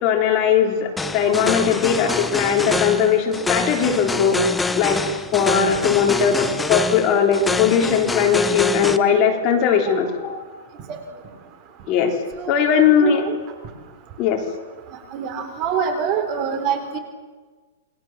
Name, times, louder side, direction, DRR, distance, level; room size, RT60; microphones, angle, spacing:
voice 1, 0.0-4.4 4.8-5.0 5.3-10.4 11.9-12.1 12.5-13.3 14.2-14.4, left 7 dB, 30° left, 2 dB, 3.5 m, -19 dB
sound 1, 1.0-9.0, left 3 dB, 5° left, 0.9 m, -26 dB
voice 2, 12.4-13.4 15.1-17.0, right 7 dB, 30° right, 7 dB, 3.7 m, -25 dB
28.5 x 21.5 x 7.4 m, 1.4 s
hypercardioid pair, 165°, 0 cm